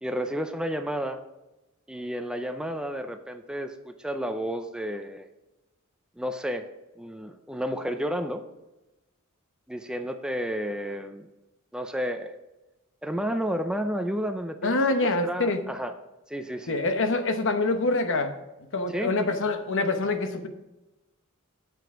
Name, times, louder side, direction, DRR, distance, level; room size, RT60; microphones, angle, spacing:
voice 1, 0.0-1.2 1.9-5.3 6.2-6.7 7.0-8.4 9.7-11.3 11.7-12.4 13.0-14.8 15.2-15.9 16.3-16.8 18.9-19.1, equal, 5° right, 7 dB, 0.4 m, -31 dB
voice 2, 14.6-15.6 16.7-18.3 18.7-20.5, left 2 dB, 60° left, 8 dB, 0.9 m, -25 dB
8.0 x 6.9 x 4.9 m, 1.0 s
head